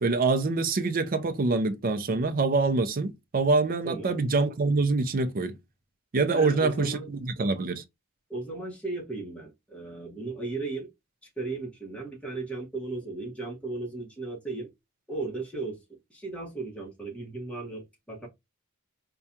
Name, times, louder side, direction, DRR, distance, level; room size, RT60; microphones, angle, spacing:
voice 1, 0.0-5.6 6.1-7.8, right 3 dB, 40° right, 0.5 m, -25 dB
voice 2, 3.8-4.2 6.3-7.1 8.3-10.9 11.4-14.7 15.1-15.8 16.1-18.3, right 3 dB, 5° left, 1.2 m, -36 dB
4.6 x 2.3 x 2.7 m
head